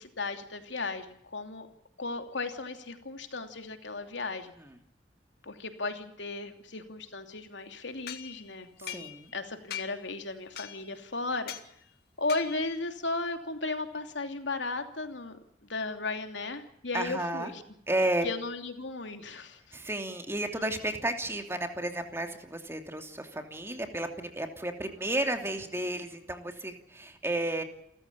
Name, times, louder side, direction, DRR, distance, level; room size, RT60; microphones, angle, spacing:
voice 1, 0.0-1.7 2.0-4.5 5.4-11.5 12.2-15.4 15.6-17.6 18.2-19.6, left 3 dB, 75° left, 6 dB, 2.9 m, -35 dB
sound 1, 8.1-9.4 9.7-10.1 10.6-11.0 11.5-11.7 12.3-12.8, left 10 dB, 55° left, 1.9 m, -42 dB
voice 2, 8.8-9.3 16.9-17.5 17.9-18.3 19.7-27.6, right 1 dB, 15° right, 5 dB, 2.8 m, -32 dB
29.0 x 14.5 x 8.7 m, 0.75 s
head